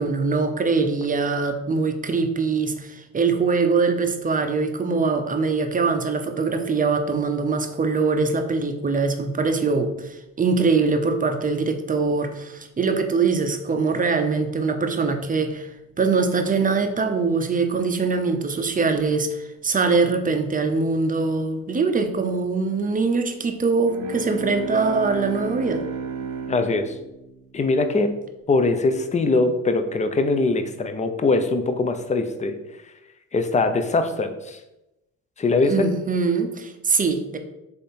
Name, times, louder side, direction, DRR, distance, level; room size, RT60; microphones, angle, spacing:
voice 1, 0.0-15.7 16.0-25.8 35.6-37.4, right 4 dB, 25° right, 7 dB, 0.6 m, -23 dB
Bowed string instrument, 23.8-28.3, right 5 dB, 85° right, 0.7 m, -34 dB
voice 2, 26.5-26.9 27.5-28.1 28.5-32.6 33.3-34.6 35.4-35.9, left 3 dB, 20° left, 8 dB, 0.5 m, -22 dB
3.5 x 3.4 x 4.2 m, 0.93 s
supercardioid pair, 70°, 34 cm